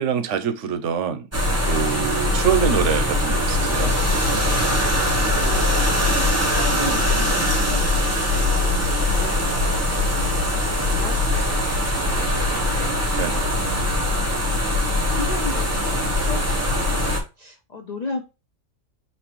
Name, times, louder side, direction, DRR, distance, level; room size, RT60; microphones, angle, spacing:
voice 1, 0.0-3.9 13.1-13.5, right 8 dB, 75° right, 0.9 m, -25 dB
sound 1, 1.3-17.2, left 1 dB, 15° right, 0.7 m, -21 dB
voice 2, 5.2-7.9 8.4-11.2 11.5-11.6 12.1-12.9 13.4-14.0 14.7-18.2, left 4 dB, 60° left, 0.4 m, -35 dB
5.2 x 2.9 x 2.9 m
omnidirectional pair, 1.3 m